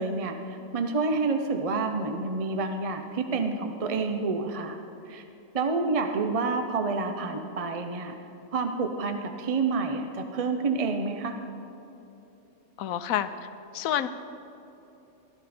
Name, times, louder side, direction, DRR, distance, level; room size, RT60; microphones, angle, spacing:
voice 1, 0.0-4.8 5.1-5.2 5.5-8.1 8.5-11.4, right 4 dB, 40° right, 5 dB, 0.5 m, -28 dB
voice 2, 12.8-13.3 13.7-14.1, left 11 dB, 90° left, 11 dB, 1.1 m, -27 dB
14.5 x 13.5 x 4.3 m, 2.9 s
omnidirectional pair, 1.4 m